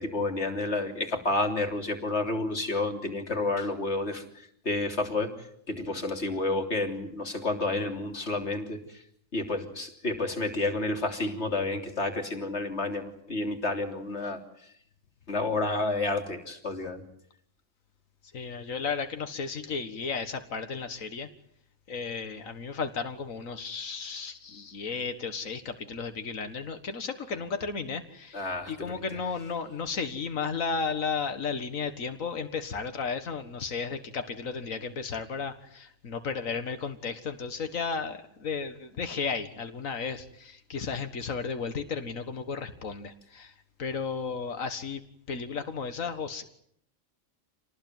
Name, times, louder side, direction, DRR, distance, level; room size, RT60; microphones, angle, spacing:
voice 1, 0.0-4.2 4.7-5.3 5.7-8.8 9.3-14.4 15.3-17.0 28.3-28.7, left 2 dB, 55° left, 4 dB, 3.6 m, -30 dB
voice 2, 18.3-21.3 21.9-43.5 43.8-45.0 45.3-46.4, left 5 dB, 90° left, 8 dB, 2.0 m, -34 dB
28.0 x 19.5 x 9.4 m, 0.70 s
omnidirectional pair, 1.3 m